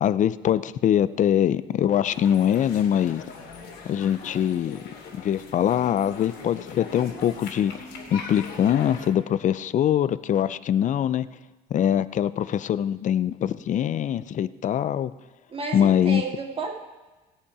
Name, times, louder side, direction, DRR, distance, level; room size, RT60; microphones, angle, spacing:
voice 1, 0.0-3.2 3.9-4.8 5.1-7.9 8.1-11.3 11.7-15.1 15.7-16.2, left 10 dB, 45° left, 16 dB, 0.5 m, -23 dB
sound 1, 2.1-9.1, left 4 dB, 85° left, 2.6 m, -41 dB
voice 2, 15.5-16.8, right 4 dB, 35° right, 2 dB, 2.1 m, -32 dB
17.0 x 8.7 x 4.8 m, 1.2 s
cardioid pair, 110°, 17 cm